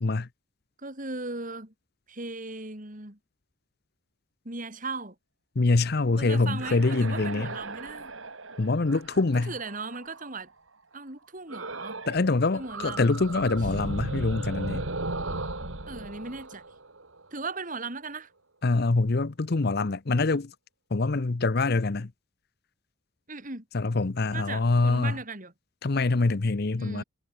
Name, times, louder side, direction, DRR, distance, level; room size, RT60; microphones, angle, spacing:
voice 1, 0.8-1.7 2.1-3.2 4.4-5.1 6.2-8.1 9.3-10.5 10.9-12.0 12.5-13.2 15.9-16.6 17.3-18.3 23.3-23.6 24.3-25.5 26.8-27.0, right 3 dB, 40° right, 3.9 m, -37 dB
voice 2, 5.6-7.5 8.6-9.5 12.1-14.9 18.6-20.5 20.9-22.1 23.7-25.1 25.8-27.0, left 3 dB, 50° left, 0.7 m, -25 dB
sound 1, 6.6-10.4 11.5-12.2 12.5-17.4, right 2 dB, 80° right, 4.7 m, -36 dB
head